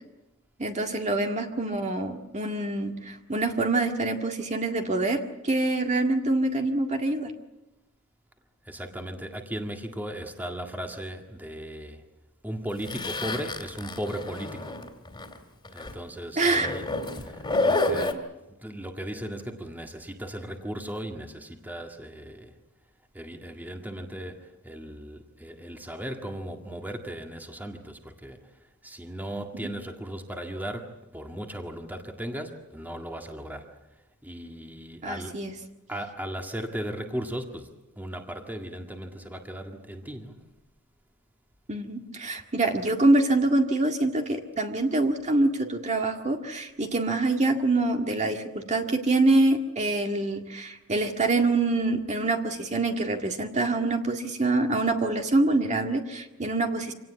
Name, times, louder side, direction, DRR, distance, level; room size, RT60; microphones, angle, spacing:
voice 1, 0.6-7.3 16.4-16.7 29.5-29.7 35.0-35.5 41.7-56.9, right 2 dB, 30° right, 3 dB, 1.9 m, -25 dB
voice 2, 8.6-12.0 12.4-14.8 15.7-16.9 17.1-22.6 23.1-33.8 34.2-35.4 35.9-40.5, right 1 dB, 10° right, 3 dB, 1.9 m, -37 dB
Zipper (clothing), 12.8-15.4 15.6-15.9 16.6-18.1, left 2 dB, 20° left, 2.6 m, -29 dB
26.5 x 18.5 x 8.5 m, 1.0 s
head